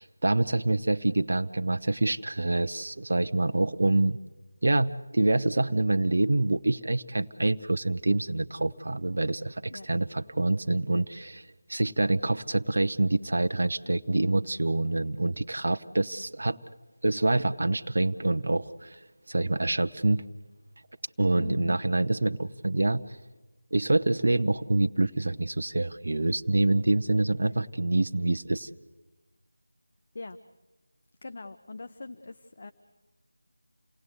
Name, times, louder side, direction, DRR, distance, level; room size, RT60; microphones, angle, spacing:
voice 1, 0.0-4.2 4.6-16.6 17.0-19.0 19.3-20.2 21.2-23.0 23.7-28.7, right 2 dB, 55° right, 9 dB, 0.8 m, -26 dB
voice 2, 21.4-21.8 30.1-30.4 31.2-32.7, left 3 dB, 40° left, 10 dB, 0.9 m, -41 dB
29.0 x 19.0 x 8.0 m, 1.2 s
figure-of-eight pair, 165°, 0 cm